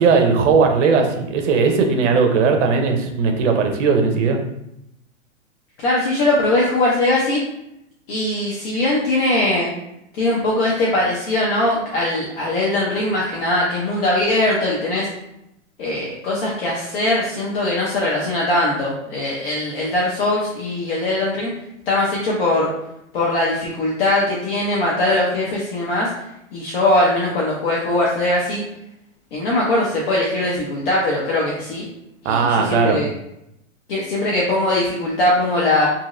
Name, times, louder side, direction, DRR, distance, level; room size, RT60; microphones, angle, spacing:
voice 1, 0.0-4.4 32.2-33.0, right 5 dB, 60° right, 4 dB, 0.7 m, -17 dB
voice 2, 5.8-7.4 8.1-9.7 10.2-15.1 15.8-21.5 21.9-22.7 23.1-26.1 26.5-28.6 29.3-31.9 32.2-33.1 33.9-35.9, left 1 dB, 45° left, -5 dB, 0.7 m, -20 dB
3.0 x 2.6 x 2.5 m, 0.82 s
hypercardioid pair, 150°, 40 cm